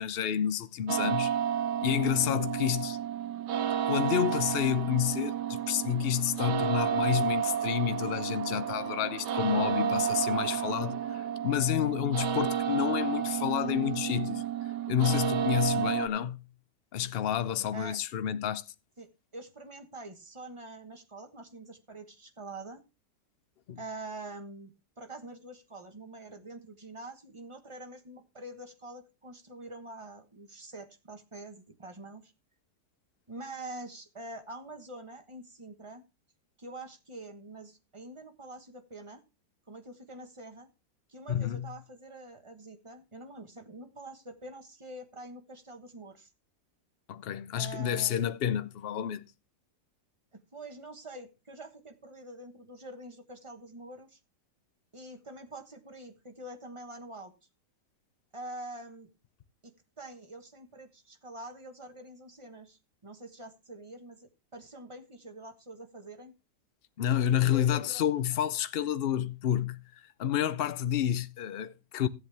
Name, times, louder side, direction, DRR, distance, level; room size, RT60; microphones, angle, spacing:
voice 1, 0.0-1.4 1.8-3.0 3.9-14.4 14.9-16.4 16.9-18.6 23.7-23.8 41.3-41.7 47.1-49.3 67.0-69.8 70.2-72.1, left 10 dB, 75° left, 0.5 m, -29 dB
sound 1, 0.9-16.1, right 9 dB, 90° right, 1.4 m, -31 dB
voice 2, 19.3-22.8 23.8-32.3 33.3-36.0 36.6-39.2 39.7-40.7 41.1-46.3 47.5-48.2 50.3-54.2 54.9-57.3 58.3-59.1 59.6-66.3 67.5-68.0, right 2 dB, 20° right, 1.2 m, -45 dB
15.0 x 8.0 x 3.4 m
omnidirectional pair, 1.8 m